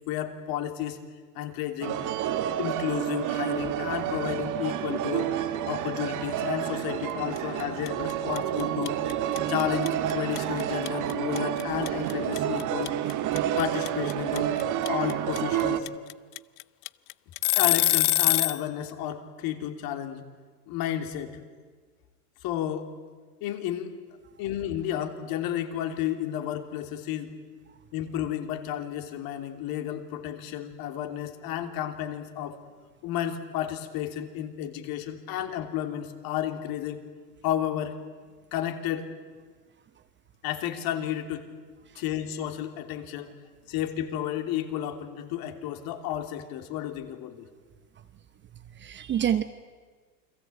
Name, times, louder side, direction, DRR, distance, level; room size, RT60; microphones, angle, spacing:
voice 1, 0.1-1.0 1.3-2.0 2.6-5.3 5.7-9.0 9.5-12.9 13.6-14.5 14.9-15.9 17.6-20.2 20.7-21.4 22.4-22.9 23.4-23.9 24.4-27.3 27.9-32.6 33.0-37.0 37.4-38.0 38.5-39.1 40.4-41.5 41.9-43.3 43.7-47.5, left 11 dB, 45° left, 6 dB, 3.2 m, -32 dB
sound 1, 1.8-15.8, right 11 dB, 35° right, 2.0 m, -29 dB
sound 2, 7.4-7.6 7.9-18.6, left 20 dB, 65° left, 0.7 m, -24 dB
voice 2, 48.5-49.4, right 9 dB, 20° right, 11 dB, 1.0 m, -28 dB
29.5 x 22.0 x 8.6 m, 1.5 s
hypercardioid pair, 125°, 50 cm